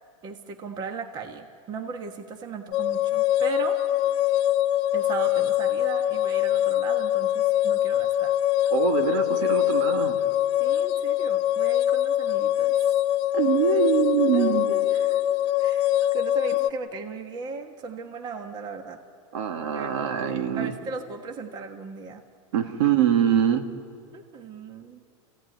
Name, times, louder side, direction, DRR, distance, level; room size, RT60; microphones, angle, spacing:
voice 1, 0.2-3.8 4.9-8.3 10.6-12.7 14.3-15.2 15.6-19.0 19.7-19.9 20.3-22.2 24.1-25.0, right 4 dB, 25° right, 6 dB, 1.4 m, -37 dB
sound 1, 2.7-16.7, left 12 dB, 35° left, 0.5 m, -23 dB
voice 2, 8.7-10.3 13.3-14.7 19.3-20.7 22.5-23.7, right 9 dB, 65° right, 6 dB, 2.1 m, -24 dB
28.0 x 16.0 x 9.4 m, 2.4 s
supercardioid pair, 155°, 17 cm